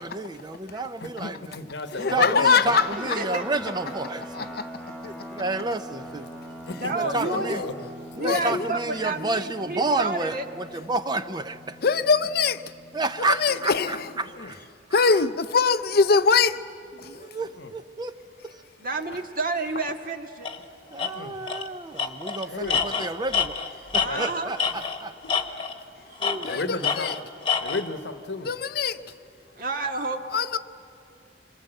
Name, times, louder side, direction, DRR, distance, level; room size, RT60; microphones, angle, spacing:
voice 1, 0.0-1.6 2.0-4.2 5.4-6.3 6.9-7.6 8.2-11.8 12.9-15.2 16.9-18.1 20.9-23.6 23.9-25.1, right 2 dB, 25° right, 0.6 m, -30 dB
voice 2, 1.0-2.6 6.7-7.7 14.3-14.5 17.6-17.7 21.0-21.4 22.5-22.8 24.0-24.3 26.5-27.1 27.6-28.5, left 3 dB, 75° left, 1.1 m, -32 dB
voice 3, 1.9-3.2 4.4-4.5 8.2-8.7 11.8-12.6 13.4-14.1 14.9-16.6 17.0-17.3 26.4-27.1 28.4-29.0 30.3-30.6, left 5 dB, 55° left, 0.6 m, -22 dB
sound 1, 2.6-14.4, equal, 5° right, 2.1 m, -42 dB
voice 4, 3.0-3.4 5.0-5.1 6.8-7.6 8.2-10.4 18.8-20.5 23.9-24.5 26.1-26.6 29.6-30.2, right 3 dB, 50° right, 1.8 m, -30 dB
Tools, 20.4-20.6 21.0-21.1 21.5-21.7 22.0-25.0 25.3-25.8 26.2-27.8, left 6 dB, 30° left, 1.2 m, -27 dB
27.5 x 22.5 x 7.9 m
head